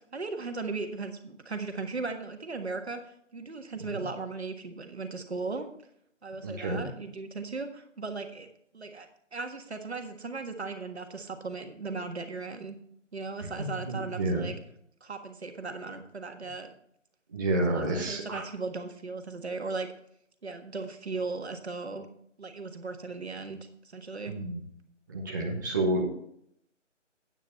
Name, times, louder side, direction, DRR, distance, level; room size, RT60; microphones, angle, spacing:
voice 1, 0.1-5.7 6.2-8.5 8.7-12.8 13.1-14.6 15.0-16.7 17.7-19.9 20.4-22.1 22.4-23.6 23.8-24.3, right 3 dB, 60° right, 6 dB, 1.6 m, -37 dB
voice 2, 6.4-6.8 13.9-14.5 17.3-18.4 24.3-24.6 25.1-26.1, right 2 dB, 15° right, -3 dB, 0.9 m, -29 dB
9.1 x 8.4 x 4.4 m, 0.71 s
figure-of-eight pair, 155°, 37 cm